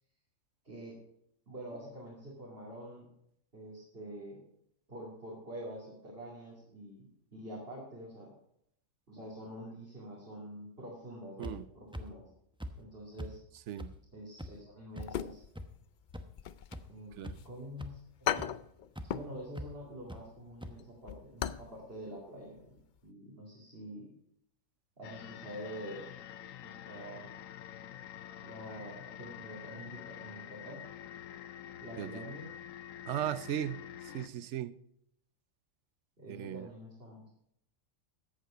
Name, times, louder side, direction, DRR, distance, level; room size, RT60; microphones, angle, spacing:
voice 1, 0.6-1.0 1.5-3.1 3.5-4.4 4.9-8.3 9.1-12.2 12.8-13.4 14.1-15.4 16.9-18.6 19.1-24.1 25.0-26.1 26.6-27.3 28.4-30.8 31.8-32.5 36.2-37.2, equal, 45° right, 3.0 m, -46 dB
sound 1, 11.4-11.5 11.9-12.0 12.6-12.7 13.2-13.3 13.8-13.9 14.4-14.5 15.0-15.1 15.6-15.7 16.1-16.2 16.7-16.8 17.2-17.5 17.8-17.9 18.4-18.5 19.0-19.1 19.5-19.7 20.1-20.2 20.6-20.7, equal, 5° right, 0.7 m, -41 dB
sound 2, 15.0-15.8 16.1-17.5 17.8-17.9 18.2-19.4 19.7-19.9 20.3-21.7 22.0-22.1 22.6-22.8 23.1-23.2, left 9 dB, 65° left, 0.5 m, -37 dB
sound 3, 25.0-34.3, left 10 dB, 80° left, 1.1 m, -47 dB
voice 2, 33.1-33.9 34.1-34.7 36.3-36.7, right 11 dB, 70° right, 0.9 m, -37 dB
14.0 x 8.3 x 5.0 m
omnidirectional pair, 1.4 m